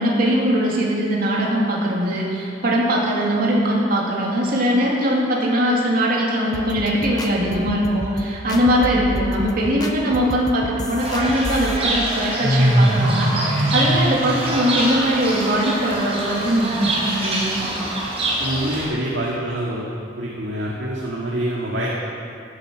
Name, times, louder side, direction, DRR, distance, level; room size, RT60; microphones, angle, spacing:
voice 1, 0.0-17.6, equal, 50° right, -3 dB, 2.6 m, -21 dB
sound 1, 6.5-11.8, left 1 dB, 20° left, 1.0 m, -31 dB
Fowl / Bird, 11.0-18.9, right 1 dB, 30° right, 3.8 m, -22 dB
voice 2, 18.4-19.9 20.2-21.9, right 1 dB, 65° right, -5 dB, 2.1 m, -26 dB
16.0 x 10.0 x 6.3 m, 2.4 s
head